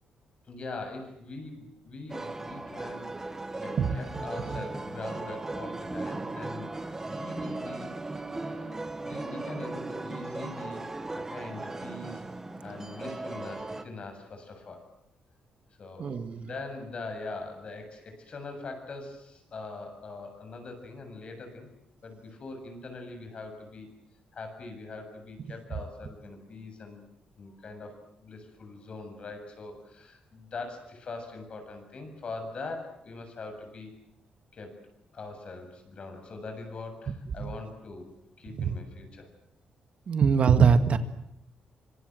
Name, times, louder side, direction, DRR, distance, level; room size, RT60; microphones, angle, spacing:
voice 1, 0.4-3.1 3.6-6.8 7.0-10.9 11.1-12.2 12.6-14.9 15.8-21.7 22.0-23.9 24.3-27.0 27.4-33.9 34.5-34.8 35.1-38.1 38.4-39.3, left 3 dB, 45° left, 6 dB, 7.4 m, -42 dB
sound 1, 2.1-13.8, right 2 dB, 15° right, 1.6 m, -37 dB
voice 2, 16.0-16.4 38.6-38.7 40.1-41.0, right 6 dB, 50° right, 9 dB, 1.8 m, -22 dB
25.5 x 25.0 x 7.9 m, 0.79 s
cardioid pair, 130°, 3 cm